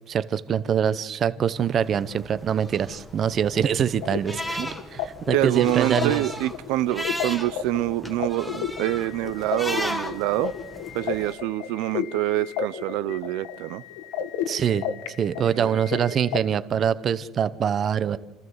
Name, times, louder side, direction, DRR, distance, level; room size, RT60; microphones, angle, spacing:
voice 1, 0.1-6.2 14.5-14.8 15.2-18.2, right 8 dB, 30° right, 15 dB, 0.8 m, -24 dB
sound 1, 1.6-11.3, left 1 dB, 5° left, 1.5 m, -36 dB
sound 2, 3.6-16.4, left 9 dB, 85° left, 1.6 m, -33 dB
voice 2, 5.3-10.5 10.9-13.8 15.5-15.8, right 16 dB, 70° right, 15 dB, 0.6 m, -26 dB
28.5 x 14.5 x 8.0 m, 1.1 s
cardioid pair, 165°, 0 cm